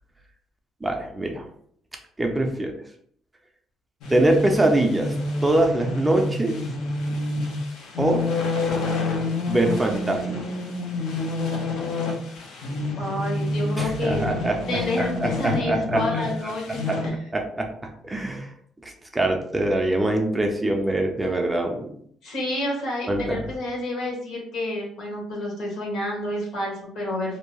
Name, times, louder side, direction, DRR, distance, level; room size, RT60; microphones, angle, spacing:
voice 1, 0.8-1.5 2.2-2.7 4.1-5.1 5.4-6.5 7.0-7.1 8.0-8.2 9.5-10.5 13.8-14.6 15.0-16.5 16.9-17.0 17.3-17.7 18.0-18.5 18.8-21.9 23.1-23.4, right 1 dB, 10° right, 2 dB, 0.4 m, -23 dB
sound 1, 4.0-17.1, left 2 dB, 85° left, 0.6 m, -28 dB
voice 2, 13.0-14.3 14.7-17.1 22.2-27.4, left 1 dB, 70° left, -2 dB, 1.1 m, -29 dB
2.6 x 2.1 x 2.9 m, 0.64 s
cardioid pair, 125°, 0 cm